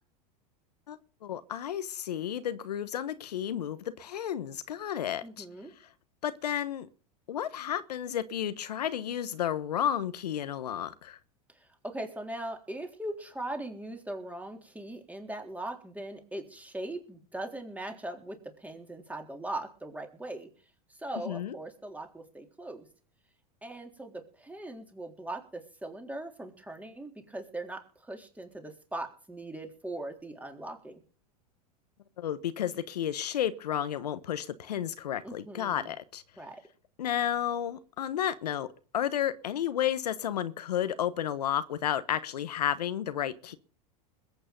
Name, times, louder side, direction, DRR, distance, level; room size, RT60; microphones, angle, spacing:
voice 1, 0.9-5.4 6.2-6.9 7.3-11.2 21.2-21.6 32.2-36.2 37.0-38.7 38.9-43.6, left 10 dB, 85° left, 1.2 m, -32 dB
voice 2, 5.2-5.7 11.8-20.5 21.0-22.9 23.6-31.0 35.2-35.9 36.4-36.6, right 1 dB, 5° right, 3.6 m, -40 dB
21.5 x 8.6 x 5.3 m
hypercardioid pair, 105°, 20 cm